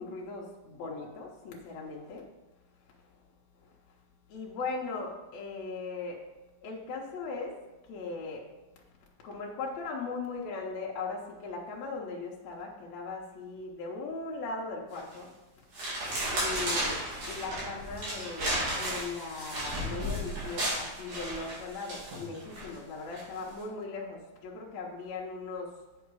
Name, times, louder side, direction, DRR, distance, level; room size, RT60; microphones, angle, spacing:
voice 1, 0.0-2.2 4.3-6.2 6.6-7.6 7.9-8.4 9.2-15.3 16.3-25.7, left 3 dB, 70° left, -2 dB, 2.1 m, -38 dB
sound 1, 14.9-15.2 15.7-22.6 23.1-23.4, right 1 dB, 75° right, 4.5 m, -34 dB
8.4 x 5.8 x 4.7 m, 1.1 s
omnidirectional pair, 3.6 m